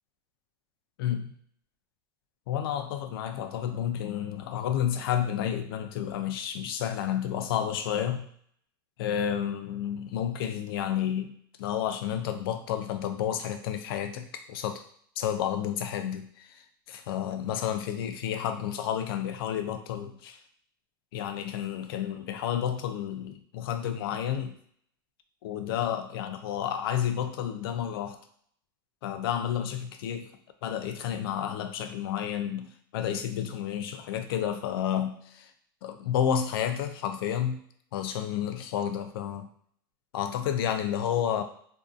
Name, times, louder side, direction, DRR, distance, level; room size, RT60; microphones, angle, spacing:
voice 1, 1.0-1.3 2.5-8.3 9.0-11.3 11.6-14.8 15.2-20.4 21.1-24.6 25.4-28.2 29.0-30.3 30.6-35.5 35.8-37.6 37.9-39.5 40.1-41.4, left 9 dB, 80° left, 8 dB, 0.4 m, -31 dB
2.6 x 2.3 x 2.4 m, 0.63 s
supercardioid pair, 125°, 12 cm